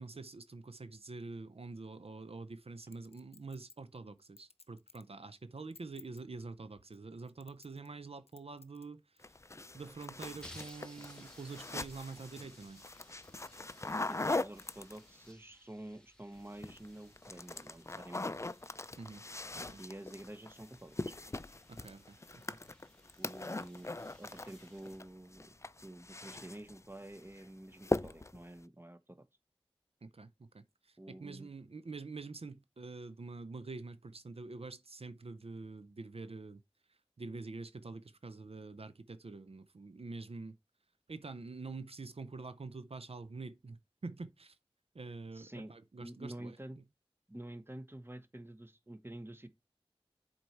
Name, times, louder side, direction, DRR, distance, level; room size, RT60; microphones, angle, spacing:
voice 1, 0.0-9.0 9.7-12.8 19.0-19.2 19.5-19.8 21.7-22.6 30.0-36.6 37.2-40.6 41.1-44.6 44.9-46.6, right 3 dB, 80° right, 0.5 m, -46 dB
Chink clink, 2.9-5.1 5.6-6.2 6.9-8.0 8.3-8.9 9.2-9.3 9.9-11.1 11.6-11.7, left 4 dB, 90° left, 0.6 m, -58 dB
sound 1, 9.2-15.3 16.4-16.9 17.2-25.0 25.3-26.8 27.1-27.4 27.8-28.4, left 2 dB, 30° left, 0.4 m, -40 dB
Balloon Flying Away, 10.2-25.6, equal, 10° left, 1.5 m, -61 dB
voice 2, 13.8-18.5 19.8-21.1 23.2-25.4 25.8-29.2 31.0-31.5 45.3-45.7 46.0-46.8 47.3-49.5, right 1 dB, 25° right, 0.9 m, -49 dB
7.8 x 4.1 x 4.5 m
wide cardioid pair, 45°, 10 cm